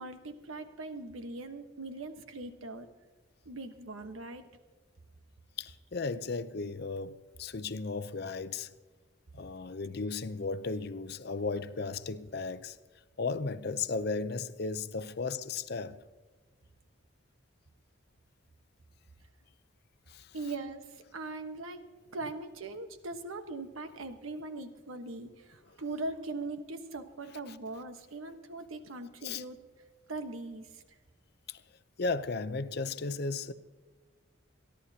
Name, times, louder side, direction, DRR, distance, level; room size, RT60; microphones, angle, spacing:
voice 1, 0.0-2.9 3.4-4.4 20.3-21.8 22.1-29.6 30.1-30.8, right 2 dB, 85° right, 1.2 m, -40 dB
voice 2, 5.6-8.7 9.3-12.8 13.2-16.0 20.1-20.3 29.2-29.4 31.5-31.6 32.0-33.5, left 4 dB, 50° left, 0.6 m, -35 dB
27.0 x 11.5 x 2.8 m
head